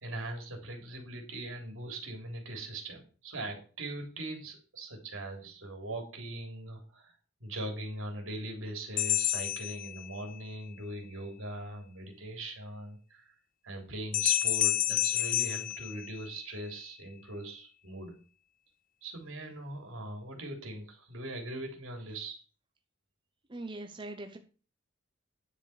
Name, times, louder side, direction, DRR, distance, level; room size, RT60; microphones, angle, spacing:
voice 1, 0.0-7.1 7.4-13.3 13.6-18.1 19.0-22.4, right 1 dB, 75° right, 3 dB, 3.3 m, -41 dB
sound 1, 9.0-10.5 14.1-16.6, left 13 dB, 40° left, 0.5 m, -30 dB
voice 2, 23.5-24.4, right 2 dB, 25° right, 6 dB, 0.8 m, -41 dB
9.8 x 7.6 x 4.9 m, 0.37 s
head